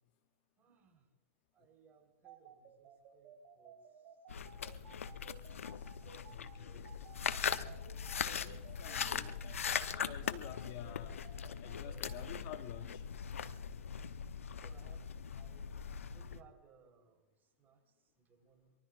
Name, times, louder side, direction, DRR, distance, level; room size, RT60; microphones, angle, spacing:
voice 1, 0.6-1.1 1.5-5.0 6.0-7.0 14.5-18.7, right 6 dB, 25° right, 3.8 m, -66 dB
sound 1, 2.2-12.1, right 9 dB, 40° right, 6.2 m, -57 dB
sound 2, 4.3-16.4, left 7 dB, 75° left, 0.8 m, -40 dB
voice 2, 6.3-6.9 8.2-11.3 11.6-13.0, left 14 dB, 45° left, 0.9 m, -51 dB
24.0 x 23.5 x 2.4 m
hypercardioid pair, 105°, 7 cm